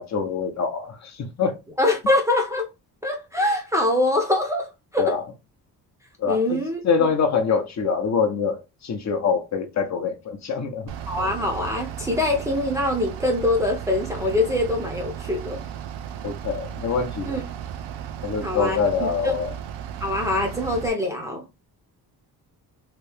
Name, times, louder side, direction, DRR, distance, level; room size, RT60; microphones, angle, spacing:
voice 1, 0.0-1.6 5.0-5.2 6.2-10.9 16.2-17.3 18.2-19.5, left 5 dB, 45° left, 0.6 m, -25 dB
voice 2, 1.8-2.7 3.0-5.1 6.3-7.1 11.1-15.6 17.3-17.4 18.4-19.3 20.0-21.4, left 2 dB, 10° right, 0.6 m, -24 dB
Bus / Idling, 10.9-20.9, right 9 dB, 80° right, 0.6 m, -35 dB
3.0 x 2.7 x 3.3 m
wide cardioid pair, 170°, 40 cm